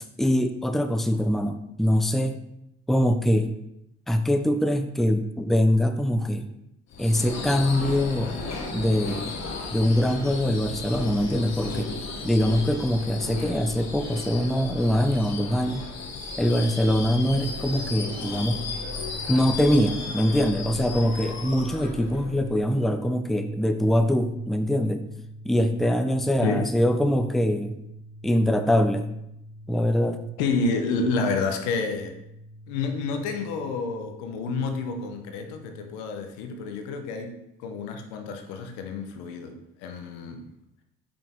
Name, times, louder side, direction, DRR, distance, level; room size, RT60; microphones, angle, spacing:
voice 1, 0.2-2.4 2.9-3.5 4.1-6.5 7.0-8.4 8.7-9.3 9.7-11.9 12.2-15.8 16.4-18.6 19.3-25.0 25.4-27.8 28.2-29.1 29.7-30.2, equal, ahead, 7 dB, 0.5 m, -23 dB
Subway metro underground / Screech, 6.9-22.8, left 3 dB, 55° left, 1.2 m, -35 dB
sound 1, 18.6-36.0, equal, 40° right, 1.4 m, -45 dB
voice 2, 30.4-32.1 32.7-40.4, left 4 dB, 80° left, 5 dB, 0.8 m, -29 dB
5.5 x 5.0 x 3.6 m, 0.81 s
hypercardioid pair, 50°, 32 cm